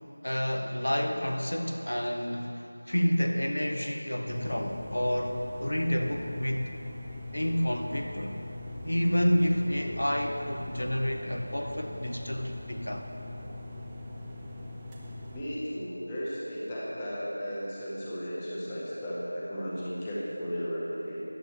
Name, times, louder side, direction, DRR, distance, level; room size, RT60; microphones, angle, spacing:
voice 1, 0.2-6.7 7.3-8.4 8.8-13.1, equal, 80° left, 4 dB, 1.3 m, -29 dB
sound 1, 4.3-15.4, left 1 dB, 10° right, 0.8 m, -41 dB
voice 2, 15.3-21.2, equal, 15° left, -7 dB, 1.6 m, -35 dB
13.5 x 11.0 x 5.2 m, 2.8 s
figure-of-eight pair, 175°, 0 cm